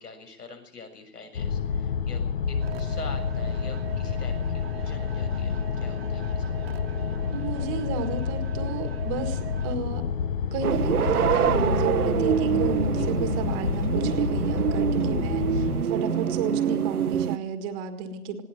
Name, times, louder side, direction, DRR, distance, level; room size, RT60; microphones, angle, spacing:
voice 1, 0.0-6.5 13.0-13.1, left 4 dB, 75° left, 7 dB, 7.2 m, -45 dB
sound 1, 1.3-15.8, left 6 dB, 35° left, 0.9 m, -29 dB
sound 2, 2.6-9.8, right 12 dB, 40° right, 1.6 m, -42 dB
voice 2, 7.3-10.0 10.5-18.4, right 6 dB, 20° right, 8 dB, 1.8 m, -32 dB
sound 3, 10.6-17.4, right 9 dB, 70° right, 1.2 m, -25 dB
20.0 x 17.5 x 7.8 m, 0.68 s
hypercardioid pair, 155°, 47 cm